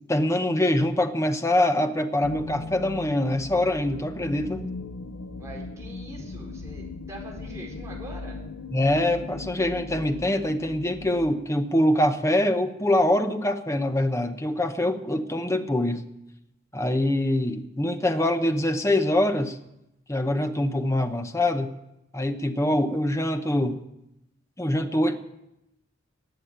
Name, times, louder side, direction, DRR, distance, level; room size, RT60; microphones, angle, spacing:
voice 1, 0.0-4.7 8.7-16.1 16.7-19.6 20.1-21.7 22.1-23.8 24.6-25.2, left 1 dB, 15° left, 7 dB, 0.9 m, -24 dB
sound 1, 2.2-11.3, left 3 dB, 85° left, 0.6 m, -38 dB
voice 2, 5.4-8.4, right 1 dB, 15° right, -2 dB, 4.1 m, -43 dB
19.5 x 7.2 x 8.8 m, 0.87 s
head